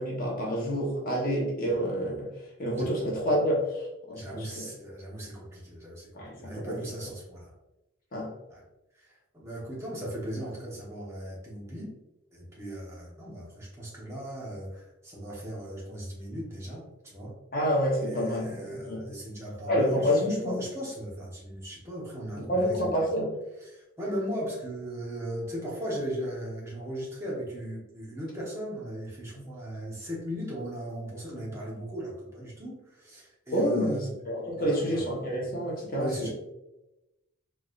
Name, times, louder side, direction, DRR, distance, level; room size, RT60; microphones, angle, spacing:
voice 1, 0.0-2.3 2.6-4.7 6.1-7.1 8.1-8.3 17.5-19.0 19.7-20.6 22.5-23.4 31.4-31.5 33.5-36.3, equal, 40° left, -3 dB, 1.1 m, -28 dB
voice 2, 4.1-6.1 6.4-7.5 8.5-8.6 8.9-12.0 12.3-17.4 18.0-20.2 20.4-22.8 23.6-34.1 34.6-35.0 36.0-36.3, equal, 15° right, -5 dB, 1.1 m, -38 dB
4.7 x 3.2 x 2.5 m, 0.96 s
head